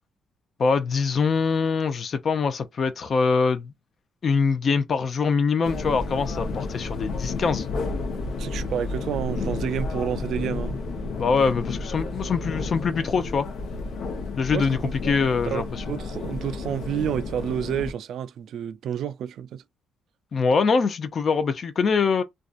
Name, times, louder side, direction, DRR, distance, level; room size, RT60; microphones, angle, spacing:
voice 1, 0.6-3.7 4.2-7.7 11.2-13.5 14.4-15.8 20.3-22.2, left 5 dB, 50° left, 0.5 m, -23 dB
sound 1, 5.6-17.9, left 3 dB, 75° left, 0.8 m, -31 dB
voice 2, 8.4-10.8 14.5-14.7 15.2-19.6, right 9 dB, 70° right, 0.3 m, -30 dB
2.6 x 2.3 x 2.4 m
cardioid pair, 90°, 0 cm